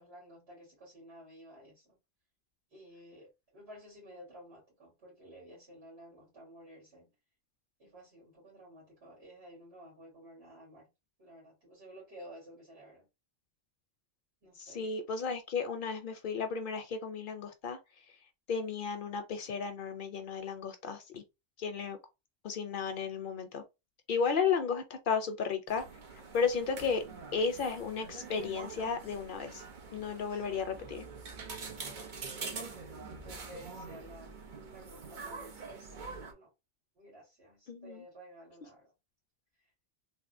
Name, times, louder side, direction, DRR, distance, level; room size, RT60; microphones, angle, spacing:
voice 1, 0.0-2.0 2.7-7.1 7.8-10.9 11.2-13.1 14.4-14.9 30.3-30.6 31.9-32.8 33.1-35.8 36.2-36.5 37.0-38.9, equal, 90° right, 2.1 m, -53 dB
voice 2, 14.6-17.8 18.5-21.2 21.6-22.0 22.4-23.6 24.1-25.8 26.1-27.0 27.3-29.6 29.9-31.1 37.7-38.1, left 5 dB, 60° left, 0.6 m, -34 dB
sound 1, 25.7-36.3, right 4 dB, 55° right, 0.8 m, -45 dB
3.4 x 2.4 x 2.5 m
omnidirectional pair, 1.1 m